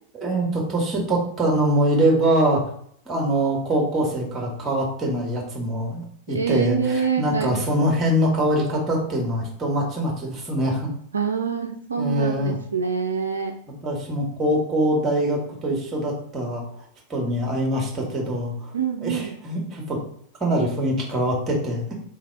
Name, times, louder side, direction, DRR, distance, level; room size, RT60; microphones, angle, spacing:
voice 1, 0.1-2.6 3.0-10.9 12.0-12.6 13.8-16.8 17.1-18.7 19.0-20.0 20.4-21.9, right 1 dB, 20° right, -1 dB, 1.6 m, -23 dB
voice 2, 6.3-7.6 11.1-13.6 18.7-19.3, right 6 dB, 75° right, 4 dB, 0.4 m, -26 dB
3.4 x 3.2 x 4.5 m, 0.63 s
figure-of-eight pair, 90°, 0 cm